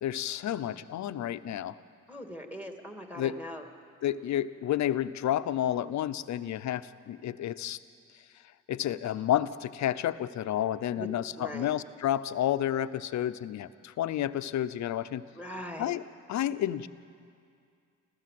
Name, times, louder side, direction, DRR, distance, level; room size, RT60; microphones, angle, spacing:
voice 1, 0.0-1.8 3.2-3.4 4.0-7.8 8.7-15.2 15.8-16.0 16.3-16.9, left 11 dB, 65° left, 12 dB, 0.8 m, -30 dB
voice 2, 2.1-3.7 11.0-11.1 11.4-11.7 15.3-15.9, equal, 5° right, 4 dB, 2.6 m, -41 dB
27.0 x 15.0 x 7.8 m, 2.3 s
cardioid pair, 90°, 30 cm